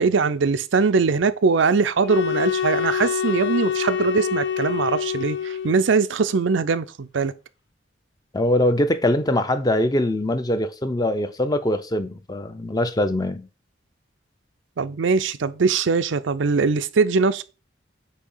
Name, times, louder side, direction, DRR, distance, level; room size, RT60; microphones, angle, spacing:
voice 1, 0.0-7.3 14.8-17.4, right 4 dB, 85° right, 0.5 m, -21 dB
sound 1, 2.0-6.0, left 8 dB, 80° left, 0.8 m, -26 dB
voice 2, 8.3-13.5, left 1 dB, 20° left, 0.6 m, -22 dB
8.4 x 2.8 x 5.5 m
head